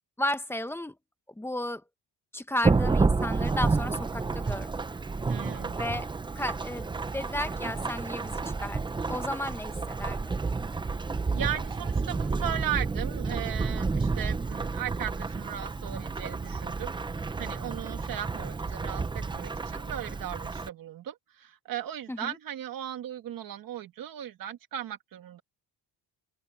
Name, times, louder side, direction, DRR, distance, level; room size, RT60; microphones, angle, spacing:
voice 1, 0.2-1.0 1.4-1.8 2.3-4.7 5.8-6.1 6.3-8.8 9.1-10.3 22.1-22.4, left 1 dB, 5° left, 0.9 m, -34 dB
Thunderstorm / Rain, 2.6-20.7, right 4 dB, 10° right, 0.5 m, -30 dB
voice 2, 5.3-5.8 11.3-25.4, right 11 dB, 50° right, 1.9 m, -37 dB
open air
cardioid pair, 175°, 44 cm